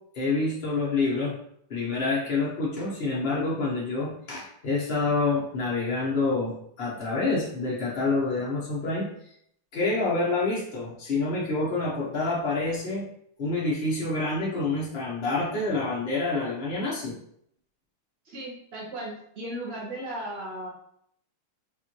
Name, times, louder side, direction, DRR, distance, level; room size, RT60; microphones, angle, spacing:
voice 1, 0.1-1.4 1.7-9.1 9.7-13.1 13.4-17.2, left 3 dB, 65° left, -5 dB, 0.5 m, -27 dB
voice 2, 18.2-20.7, right 1 dB, 60° right, -5 dB, 0.6 m, -36 dB
5.4 x 2.5 x 2.9 m, 0.70 s
omnidirectional pair, 2.2 m